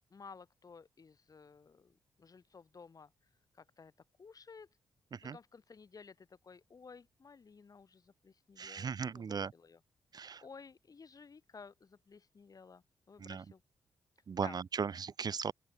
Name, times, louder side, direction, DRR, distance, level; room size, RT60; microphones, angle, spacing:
voice 1, 0.1-3.1 3.5-3.9 4.2-4.7 5.2-9.8 10.4-13.6 14.4-14.6, left 5 dB, 50° left, 5.4 m, -55 dB
voice 2, 8.6-9.5 10.1-10.4 13.2-13.4 14.3-15.5, right 6 dB, 55° right, 1.8 m, -37 dB
open air
supercardioid pair, 50°, 8 cm